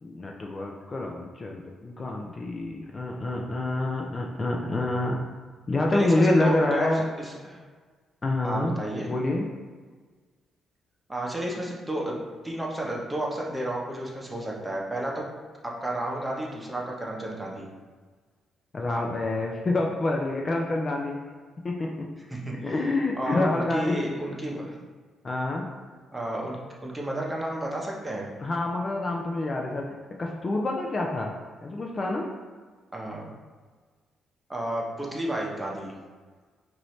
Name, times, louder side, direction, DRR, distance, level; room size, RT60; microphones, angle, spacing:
voice 1, 0.0-5.2 5.7-7.0 8.2-8.8 9.1-9.5 18.7-21.2 21.6-22.1 22.6-24.0 25.2-25.7 28.4-29.9 30.2-31.4 31.6-32.3, left 2 dB, 35° left, 0 dB, 0.4 m, -27 dB
voice 2, 5.9-6.9 7.2-7.6 8.4-9.1 11.1-15.2 15.6-17.7 22.3-22.7 23.2-24.8 26.1-28.3 32.9-33.3 34.5-35.9, right 1 dB, 10° right, -2 dB, 0.9 m, -32 dB
4.5 x 2.7 x 3.2 m, 1.5 s
cardioid pair, 90°, 0 cm